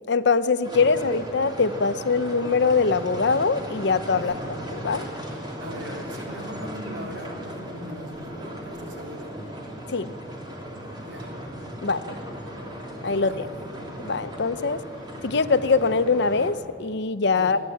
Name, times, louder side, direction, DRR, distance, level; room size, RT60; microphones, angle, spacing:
voice 1, 0.0-4.3 4.7-5.1 9.9-10.1 11.8-12.2 13.0-13.5 14.0-14.8 15.2-17.6, left 4 dB, 65° left, 13 dB, 0.7 m, -23 dB
sound 1, 0.6-16.5, equal, 25° right, 2.9 m, -37 dB
voice 2, 4.1-4.6 5.6-9.3 11.0-11.3 13.3-13.7 17.3-17.6, equal, 80° right, 0 dB, 3.7 m, -39 dB
28.0 x 10.5 x 9.3 m, 2.4 s
head